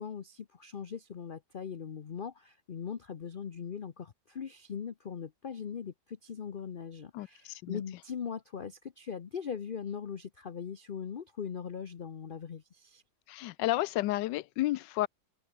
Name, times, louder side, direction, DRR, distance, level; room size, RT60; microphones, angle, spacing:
voice 1, 0.0-13.0, left 7 dB, 50° left, 0.6 m, -40 dB
voice 2, 7.1-7.8 13.3-15.1, left 16 dB, 80° left, 1.2 m, -31 dB
omnidirectional pair, 1.9 m